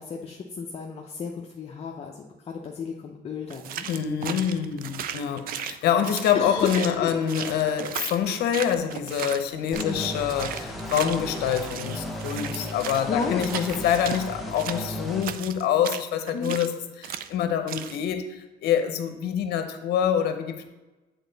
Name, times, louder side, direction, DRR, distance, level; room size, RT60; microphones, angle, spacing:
voice 1, 0.0-3.9 6.3-7.1 9.7-10.1 13.1-13.5 16.3-16.6, left 5 dB, 35° left, 1 dB, 0.6 m, -32 dB
sound 1, 3.5-10.0 10.3-14.2 14.6-16.7 17.0-17.3 17.7-18.0, right 10 dB, 60° right, 0.4 m, -36 dB
voice 2, 3.9-20.7, left 9 dB, 75° left, 8 dB, 0.7 m, -26 dB
sound 2, 9.7-15.2, left 1 dB, ahead, 0.8 m, -35 dB
7.8 x 4.0 x 4.0 m, 1.1 s
cardioid pair, 110°, 17 cm